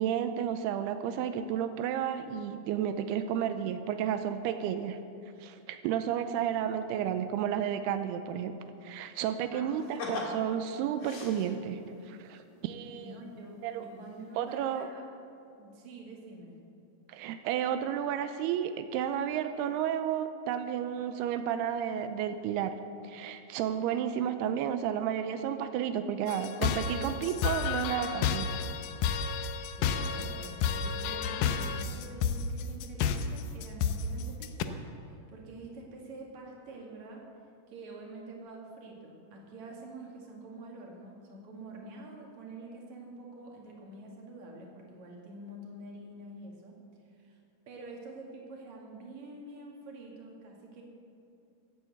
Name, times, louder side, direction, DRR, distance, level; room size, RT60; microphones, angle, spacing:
voice 1, 0.0-5.0 5.4-8.6 8.8-11.8 12.1-13.2 13.6-13.9 14.4-14.9 17.1-22.7 23.0-28.5, right 9 dB, 90° right, 9 dB, 2.7 m, -32 dB
voice 2, 9.5-10.3 12.5-15.1 15.6-16.6 29.7-37.2 37.7-46.7 47.2-47.4 47.7-50.8, right 2 dB, 50° right, -1 dB, 3.3 m, -47 dB
sound 1, 9.8-11.9 13.3-13.4 13.9-14.3 14.6-14.8, left 3 dB, 45° left, 2.8 m, -40 dB
sound 2, 26.3-34.6, left 6 dB, 90° left, 1.8 m, -31 dB
15.0 x 9.6 x 7.9 m, 2.8 s
omnidirectional pair, 4.6 m